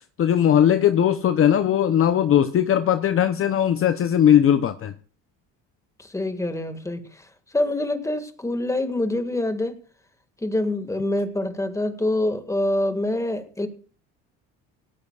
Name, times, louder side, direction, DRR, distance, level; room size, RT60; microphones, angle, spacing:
voice 1, 0.2-4.9, left 10 dB, 40° left, 10 dB, 0.8 m, -19 dB
voice 2, 6.0-7.1 7.5-9.8 10.4-13.7, left 1 dB, 10° left, 8 dB, 1.9 m, -25 dB
18.0 x 14.0 x 2.4 m, 0.41 s
supercardioid pair, 100°, 33 cm